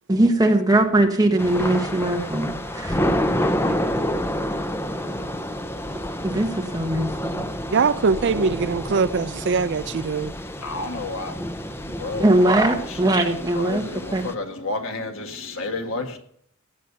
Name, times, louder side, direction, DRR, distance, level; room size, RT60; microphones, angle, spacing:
voice 1, 0.1-3.0 6.2-7.4 12.2-13.8 14.1-14.2, right 1 dB, 15° right, 1.4 m, -20 dB
Thunder / Rain, 1.4-14.3, equal, 10° left, 0.7 m, -28 dB
voice 2, 7.7-10.3, right 5 dB, 55° right, 0.4 m, -22 dB
voice 3, 10.6-12.4 12.8-16.2, left 3 dB, 65° left, 1.7 m, -32 dB
16.5 x 6.5 x 6.9 m
head